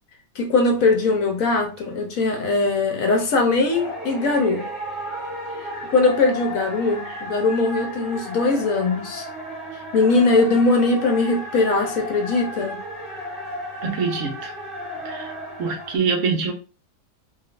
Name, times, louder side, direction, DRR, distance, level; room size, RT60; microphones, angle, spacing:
voice 1, 0.3-4.7 5.6-9.3 9.9-12.8, left 3 dB, 65° left, 1.0 m, -20 dB
sound 1, 0.9-2.8 3.2-3.4 3.6-16.0, equal, 35° right, 1.6 m, -34 dB
voice 2, 13.8-14.5 15.0-15.3 15.6-16.5, right 5 dB, 65° right, 1.0 m, -24 dB
3.5 x 2.7 x 2.4 m
omnidirectional pair, 1.6 m